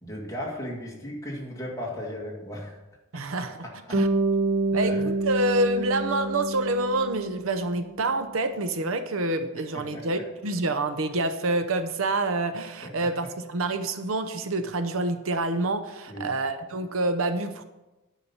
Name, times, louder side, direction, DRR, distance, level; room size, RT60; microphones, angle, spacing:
voice 1, 0.0-2.8 3.4-4.1 4.8-5.1 9.7-10.1 12.8-13.1 16.1-16.3, equal, 15° left, -3 dB, 2.0 m, -36 dB
voice 2, 3.1-3.6 3.9-4.1 4.7-17.6, right 2 dB, 75° right, 9 dB, 0.7 m, -27 dB
Bass guitar, 3.9-8.2, right 2 dB, 45° right, 1.5 m, -27 dB
9.8 x 5.8 x 5.5 m, 1.0 s
head